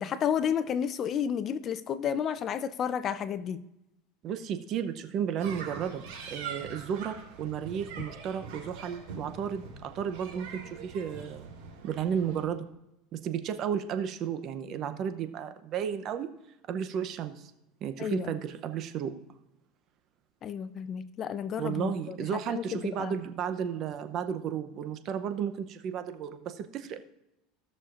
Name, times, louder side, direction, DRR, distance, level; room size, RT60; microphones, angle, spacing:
voice 1, 0.0-3.6 18.0-18.3 20.4-22.2 22.5-22.6 23.0-23.1, left 8 dB, 35° left, 14 dB, 0.5 m, -31 dB
voice 2, 4.2-11.5 11.8-12.7 13.1-16.3 16.7-17.5 17.8-19.1 21.6-27.0, right 8 dB, 40° right, 9 dB, 0.7 m, -33 dB
sound 1, 5.4-12.4, right 5 dB, 70° right, 3.4 m, -43 dB
16.5 x 6.4 x 2.5 m, 0.88 s
supercardioid pair, 140°, 0 cm